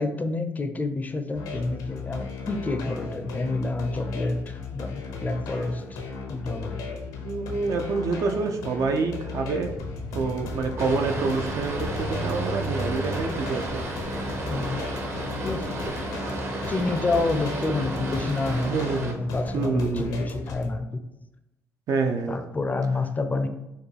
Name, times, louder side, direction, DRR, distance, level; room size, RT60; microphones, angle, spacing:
voice 1, 0.0-6.0 6.3-6.8 14.5-14.8 15.4-15.7 16.7-21.0 22.3-23.5, left 2 dB, 25° left, 9 dB, 0.4 m, -28 dB
sound 1, 1.3-20.7, left 5 dB, 90° left, 0.6 m, -37 dB
voice 2, 7.1-9.7 10.1-13.8 18.7-19.2 19.5-20.2 21.9-22.4, right 4 dB, 60° right, 4 dB, 0.4 m, -27 dB
sound 2, 9.5-15.0, right 2 dB, 75° right, 1.1 m, -37 dB
Boat Water vehicle, 10.8-19.1, right 1 dB, 40° right, 0.7 m, -33 dB
4.4 x 2.3 x 3.2 m, 0.93 s
supercardioid pair, 75°, 6 cm